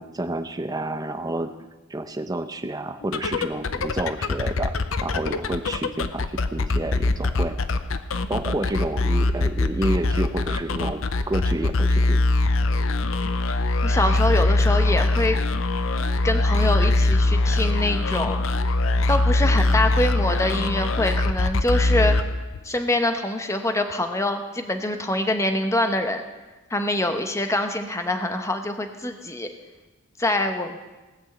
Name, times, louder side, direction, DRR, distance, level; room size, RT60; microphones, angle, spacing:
voice 1, 0.0-1.5 1.9-4.7 5.0-7.6 8.3-12.2, right 1 dB, 20° right, 8 dB, 0.8 m, -29 dB
sound 1, 3.0-22.8, left 2 dB, 70° left, 0.7 m, -22 dB
voice 2, 13.8-15.4 16.2-18.4 19.1-22.1 22.6-26.2 26.7-29.5 30.2-30.8, left 1 dB, 15° left, 6 dB, 0.9 m, -25 dB
18.5 x 6.2 x 7.9 m, 1.2 s
head